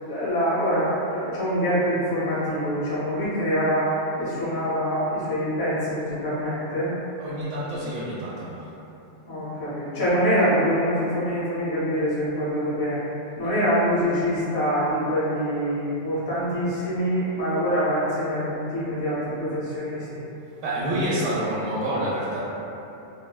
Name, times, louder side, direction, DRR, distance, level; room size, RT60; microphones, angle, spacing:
voice 1, 0.0-3.9 4.2-6.9 9.3-13.0 13.4-20.2, equal, 20° left, -10 dB, 0.6 m, -25 dB
voice 2, 7.2-8.7 20.6-22.4, right 1 dB, 75° right, -8 dB, 0.9 m, -28 dB
3.5 x 2.1 x 2.2 m, 2.9 s
omnidirectional pair, 1.4 m